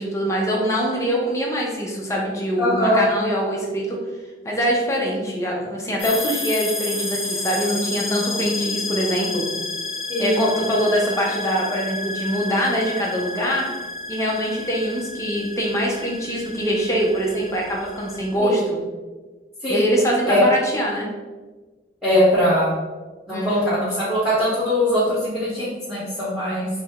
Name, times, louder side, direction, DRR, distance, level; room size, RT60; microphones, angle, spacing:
voice 1, 0.0-4.0 4.4-9.4 10.2-13.7 14.1-18.8 19.7-21.1 23.3-23.7, equal, 15° left, -2 dB, 0.7 m, -23 dB
voice 2, 2.6-3.0 10.1-10.4 18.4-18.6 19.6-19.9 20.2-20.4 22.0-22.7 23.3-26.7, equal, 5° right, -13 dB, 1.3 m, -21 dB
sound 1, 6.0-18.3, left 3 dB, 40° left, 1.2 m, -31 dB
4.9 x 2.2 x 3.6 m, 1.3 s
head